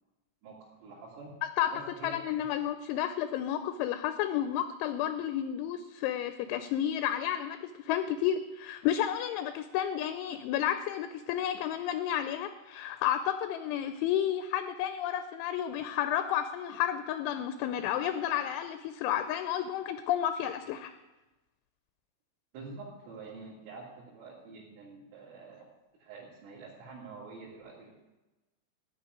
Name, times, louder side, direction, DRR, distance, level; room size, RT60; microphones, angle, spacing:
voice 1, 0.4-1.3 1.7-2.1 22.5-25.7 26.0-28.0, right 4 dB, 85° right, -7 dB, 5.3 m, -47 dB
voice 2, 2.0-20.9, left 10 dB, 80° left, 10 dB, 2.9 m, -31 dB
15.5 x 6.4 x 9.6 m, 1.1 s
omnidirectional pair, 5.7 m